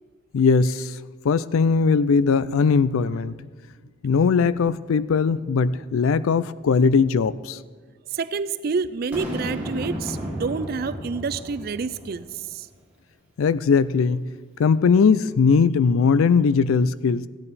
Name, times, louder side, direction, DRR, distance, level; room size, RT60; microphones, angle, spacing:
voice 1, 0.3-0.9 1.2-3.3 4.0-7.6 13.4-14.2 14.6-17.3, left 5 dB, 80° left, 17 dB, 0.4 m, -19 dB
voice 2, 8.1-12.7, right 5 dB, 45° right, 13 dB, 0.4 m, -28 dB
Boom, 9.1-12.4, equal, 5° right, 1.8 m, -33 dB
15.0 x 8.8 x 4.1 m, 1.5 s
head